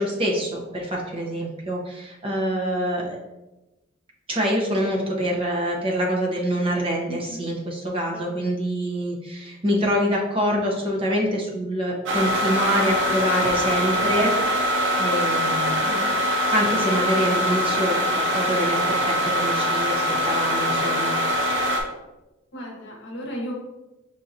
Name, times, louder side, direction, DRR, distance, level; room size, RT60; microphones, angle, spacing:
voice 1, 0.0-3.2 4.3-14.3 14.6-16.2 16.5-21.1, equal, 25° right, -2 dB, 0.7 m, -25 dB
voice 2, 7.1-7.5 8.1-8.4 22.5-23.5, equal, 60° left, -1 dB, 0.9 m, -35 dB
sound 1, 12.1-21.8, left 1 dB, 60° right, 0.6 m, -23 dB
5.5 x 2.7 x 2.5 m, 1.0 s
head